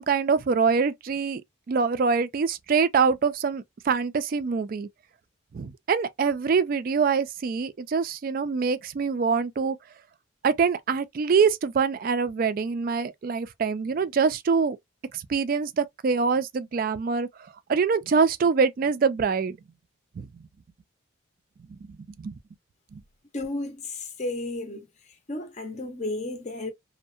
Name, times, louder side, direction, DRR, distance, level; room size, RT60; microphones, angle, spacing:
voice 1, 0.0-1.4 1.7-4.9 5.5-9.8 10.4-14.8 15.1-17.3 17.7-19.6 20.2-20.4 22.2-22.4 22.9-23.0, right 5 dB, 45° right, 0.3 m, -24 dB
voice 2, 23.3-24.9 25.3-26.7, left 2 dB, 35° left, 0.6 m, -33 dB
2.6 x 2.1 x 2.3 m
head